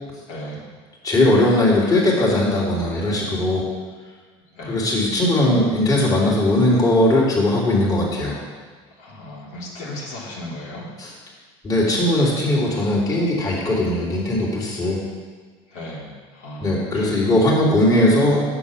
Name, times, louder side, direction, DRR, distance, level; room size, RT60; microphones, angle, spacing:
voice 1, 0.3-0.6 4.5-4.9 8.9-10.9 15.7-17.6, left 1 dB, 65° left, -5 dB, 3.1 m, -36 dB
voice 2, 1.0-3.6 4.7-8.4 11.6-15.0 16.6-18.4, left 1 dB, 25° left, -5 dB, 3.2 m, -19 dB
7.7 x 7.0 x 7.1 m, 1.5 s
supercardioid pair, 100°, 14 cm